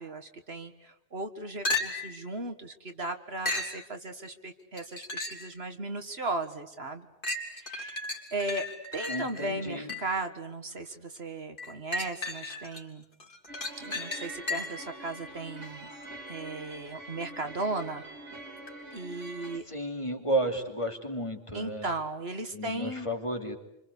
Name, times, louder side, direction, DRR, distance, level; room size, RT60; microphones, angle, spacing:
voice 1, 0.0-7.1 7.5-8.0 8.3-8.7 8.9-13.0 13.8-15.9 16.3-18.0 18.9-19.6 21.5-23.1, right 2 dB, 55° right, 7 dB, 2.0 m, -36 dB
sound 1, 1.6-2.2 3.4-3.8 4.8-5.5 6.1-6.2 7.2-10.2 11.6-12.8 13.2-14.9 18.7-18.8, left 2 dB, 45° left, 3.8 m, -35 dB
voice 2, 9.1-9.9 19.7-21.9 22.5-23.6, right 1 dB, 25° left, 4 dB, 3.0 m, -32 dB
sound 2, 13.5-19.6, right 1 dB, 80° right, 3.6 m, -45 dB
28.0 x 25.5 x 8.3 m, 0.83 s
omnidirectional pair, 1.2 m